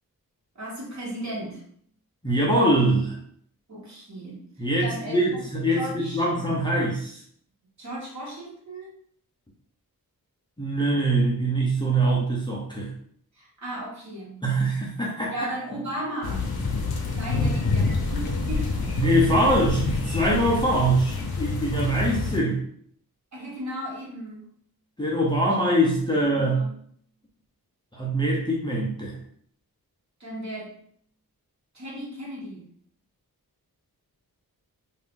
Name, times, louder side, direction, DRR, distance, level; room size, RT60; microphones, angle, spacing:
voice 1, 0.5-1.6 3.7-4.4 4.8-5.4 5.7-6.3 7.8-8.9 12.1-12.4 13.3-14.4 15.3-16.5 17.1-18.9 22.0-22.1 23.3-24.5 26.0-26.1 26.3-26.8 30.2-30.8 31.7-32.7, right 1 dB, 50° right, -4 dB, 1.2 m, -36 dB
voice 2, 2.2-3.2 4.6-7.2 10.6-12.9 14.4-15.5 18.9-22.6 25.0-26.7 27.9-29.2, right 1 dB, 10° left, -4 dB, 0.6 m, -23 dB
sound 1, 16.2-22.4, left 3 dB, 80° left, 0.7 m, -27 dB
2.6 x 2.5 x 3.6 m, 0.62 s
wide cardioid pair, 125°, 37 cm